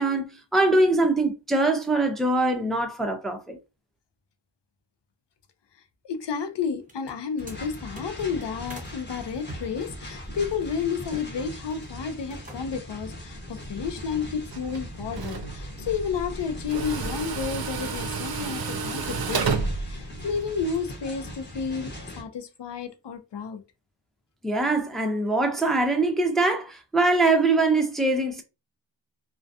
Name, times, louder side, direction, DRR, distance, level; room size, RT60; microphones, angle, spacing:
voice 1, 0.0-3.6 24.4-28.4, right 2 dB, ahead, 0.5 m, -23 dB
voice 2, 6.0-23.6, left 6 dB, 65° left, 0.6 m, -31 dB
sound 1, 6.8-8.9 9.4-11.3 11.6-12.0 12.3-12.9, right 1 dB, 15° right, 1.1 m, -44 dB
sound 2, 7.4-22.2, equal, 25° left, 1.0 m, -40 dB
Tools, 14.5-20.8, right 5 dB, 55° right, 0.5 m, -31 dB
2.3 x 2.2 x 2.6 m
cardioid pair, 55°, 45 cm